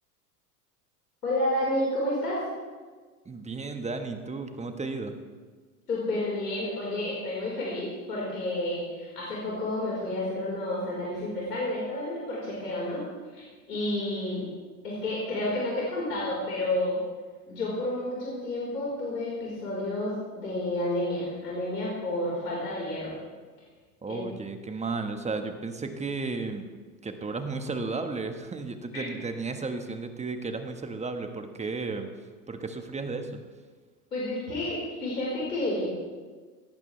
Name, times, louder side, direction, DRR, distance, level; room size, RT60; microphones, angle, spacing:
voice 1, 1.2-2.4 5.9-13.0 13.3-14.5 14.8-17.0 17.5-23.1 24.1-24.2 28.9-29.0 34.1-36.0, left 1 dB, 85° left, -5 dB, 4.6 m, -30 dB
voice 2, 3.2-5.1 24.0-26.7 27.0-32.1 32.5-33.4, right 3 dB, 15° right, 6 dB, 1.4 m, -34 dB
18.5 x 15.0 x 3.3 m, 1.4 s
hypercardioid pair, 90°, 47 cm